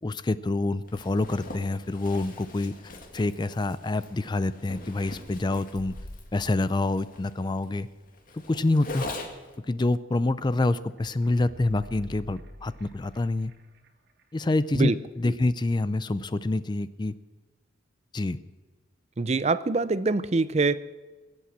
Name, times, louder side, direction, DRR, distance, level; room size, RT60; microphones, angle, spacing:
voice 1, 0.0-2.7 3.1-5.9 6.3-7.9 8.3-9.0 9.7-13.5 14.3-17.1 18.1-18.4, left 2 dB, 20° left, 15 dB, 0.4 m, -27 dB
Zipper (clothing), 0.9-9.6, left 2 dB, 45° left, 2.1 m, -42 dB
sound 1, 11.0-13.9 14.2-14.3, equal, 55° right, 1.4 m, -47 dB
voice 2, 19.2-20.8, right 3 dB, 35° right, 15 dB, 0.5 m, -24 dB
21.5 x 8.5 x 7.4 m, 1.3 s
head